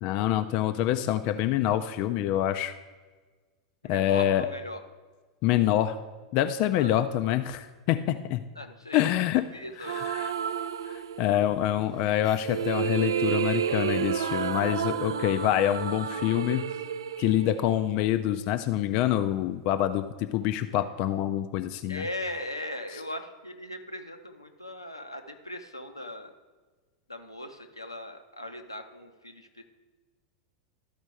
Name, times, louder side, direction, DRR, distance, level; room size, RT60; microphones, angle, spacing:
voice 1, 0.0-2.7 3.9-4.5 5.4-6.0 6.3-8.4 8.9-9.4 9.8-10.3 10.9-16.6 17.2-22.0, left 12 dB, 45° left, 9 dB, 0.4 m, -26 dB
voice 2, 3.8-4.8 6.8-6.9 8.6-9.0 9.5-10.0 21.9-26.3 27.1-29.6, left 1 dB, 85° left, 5 dB, 0.7 m, -39 dB
sound 1, 9.8-11.5 12.3-18.4, right 8 dB, 65° right, 0.3 m, -31 dB
13.0 x 4.4 x 4.6 m, 1.4 s
figure-of-eight pair, 90°, 2 cm